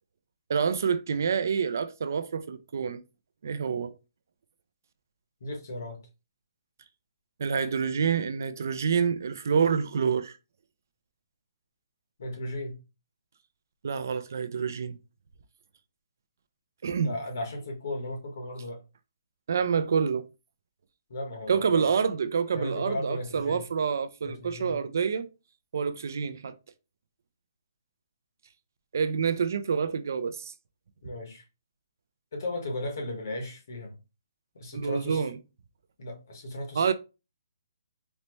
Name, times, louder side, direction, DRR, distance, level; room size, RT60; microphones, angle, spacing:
voice 1, 0.5-3.0 3.4-3.9 7.4-10.4 13.8-15.0 16.8-17.1 19.5-20.2 21.5-25.3 25.7-26.5 28.9-30.5 34.7-35.4 36.8-36.9, right 6 dB, 45° right, 0.3 m, -27 dB
voice 2, 5.4-6.0 12.2-12.8 17.0-18.8 21.1-21.9 22.5-23.6 24.2-24.8 31.0-31.4 32.3-33.9 34.5-35.3 36.0-36.9, left 1 dB, 50° left, 1.2 m, -36 dB
4.0 x 2.1 x 3.1 m
hypercardioid pair, 175°, 2 cm